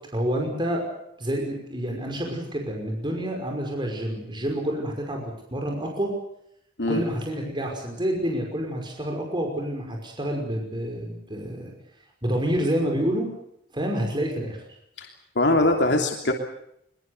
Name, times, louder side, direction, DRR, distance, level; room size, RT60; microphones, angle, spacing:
voice 1, 0.1-0.8 1.2-6.1 6.9-11.7 12.2-13.3 13.7-14.6, equal, 25° right, 2 dB, 5.6 m, -28 dB
voice 2, 15.3-16.3, left 2 dB, 90° left, 2 dB, 3.1 m, -21 dB
24.0 x 23.0 x 6.8 m, 0.73 s
head